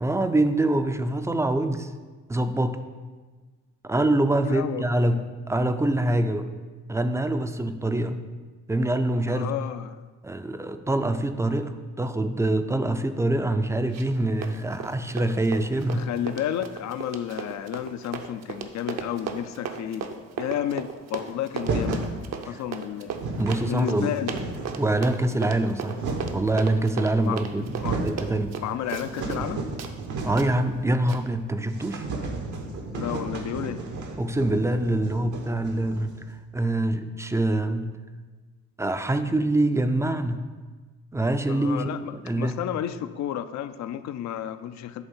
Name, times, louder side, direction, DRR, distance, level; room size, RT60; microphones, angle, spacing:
voice 1, 0.0-1.9 2.3-2.8 3.8-6.5 6.9-8.2 8.7-9.5 10.2-16.1 22.5-22.6 23.4-24.1 24.8-26.0 26.3-27.8 28.0-28.6 30.2-32.1 34.2-36.2 36.5-37.9 38.8-40.5 41.1-42.6, right 1 dB, 10° right, 9 dB, 0.4 m, -25 dB
voice 2, 4.5-4.9 9.3-10.0 15.9-20.1 20.4-22.0 22.5-23.1 23.6-24.3 27.2-27.4 27.8-28.0 28.6-29.6 32.9-33.8 41.5-45.0, left 10 dB, 65° left, 12 dB, 0.5 m, -31 dB
Run, 13.9-14.2 14.4-29.5 29.8-29.9 30.4-30.5 31.1-31.2, right 7 dB, 60° right, 0.7 m, -36 dB
sound 1, 21.6-22.1 22.8-22.9 23.0-23.6 24.0-24.8 25.5-26.5 27.2-27.3 27.6-28.2 28.6-30.6 30.8-30.9 31.2-31.3 31.7-36.2, right 3 dB, 80° right, 1.0 m, -32 dB
8.2 x 3.4 x 5.4 m, 1.4 s
cardioid pair, 90°, 30 cm